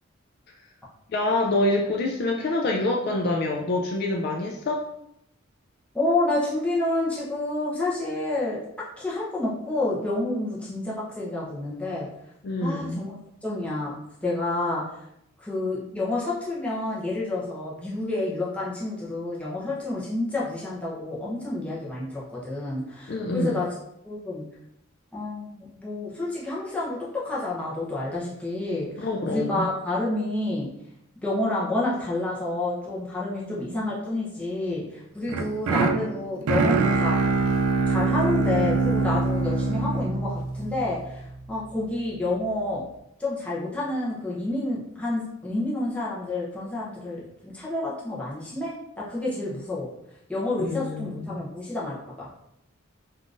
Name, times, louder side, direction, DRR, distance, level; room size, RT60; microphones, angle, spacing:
voice 1, 1.1-4.8 12.4-13.0 23.1-23.6 29.0-29.7 50.6-51.4, left 2 dB, 50° left, 0 dB, 0.3 m, -26 dB
voice 2, 5.9-8.6 9.0-12.1 12.6-13.1 13.4-13.9 14.2-14.8 15.4-23.7 24.0-24.5 25.1-30.7 31.2-37.3 37.9-42.8 43.2-49.9 50.3-52.3, left 2 dB, 5° left, -7 dB, 0.7 m, -29 dB
sound 1, 35.3-41.4, right 4 dB, 75° right, 0.3 m, -24 dB
3.6 x 2.4 x 2.5 m, 0.79 s
head